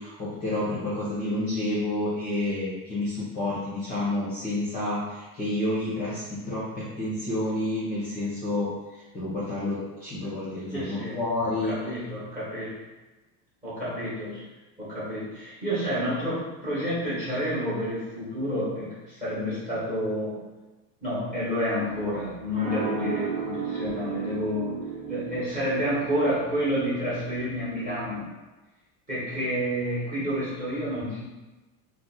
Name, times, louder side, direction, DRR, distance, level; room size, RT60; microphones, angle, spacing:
voice 1, 0.0-11.7, left 1 dB, 15° left, -10 dB, 0.6 m, -29 dB
voice 2, 10.7-11.2 11.5-12.8 13.6-14.4 14.8-20.4 21.0-24.8 25.1-28.3 29.1-31.3, equal, 15° right, -10 dB, 1.1 m, -29 dB
sound 1, 21.9-28.2, right 6 dB, 40° right, 1.0 m, -35 dB
2.6 x 2.1 x 3.9 m, 1.1 s
cardioid pair, 170°, 47 cm